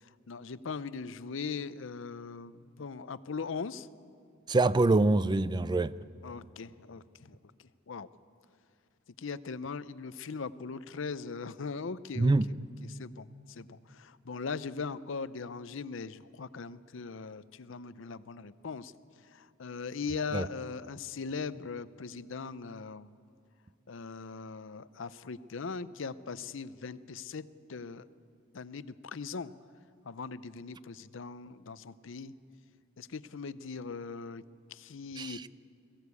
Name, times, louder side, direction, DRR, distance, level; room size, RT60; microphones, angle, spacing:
voice 1, 0.3-3.9 6.2-7.4 7.9-8.1 9.2-18.9 19.3-23.1 23.9-28.1 28.5-29.5 30.1-32.3 33.0-34.4 34.7-35.5, left 5 dB, 65° left, 16 dB, 0.6 m, -40 dB
voice 2, 4.5-5.9 12.2-12.5 20.3-20.5 35.2-35.4, right 2 dB, 20° right, 17 dB, 0.4 m, -25 dB
22.0 x 15.5 x 8.3 m, 2.4 s
head